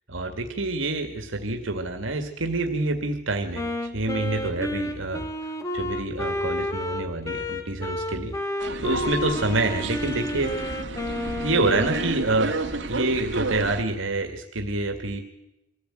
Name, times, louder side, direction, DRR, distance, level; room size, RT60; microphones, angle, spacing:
voice 1, 0.1-5.3 5.7-8.3 8.8-10.7 11.4-12.5 12.9-15.2, right 2 dB, 85° right, 5 dB, 2.0 m, -27 dB
Wind instrument woodwind instrument, 3.5-12.2, left 1 dB, 15° left, 1.8 m, -31 dB
sound 1, 8.6-13.8, right 2 dB, 65° right, 2.1 m, -31 dB
24.0 x 15.0 x 9.0 m, 0.91 s
head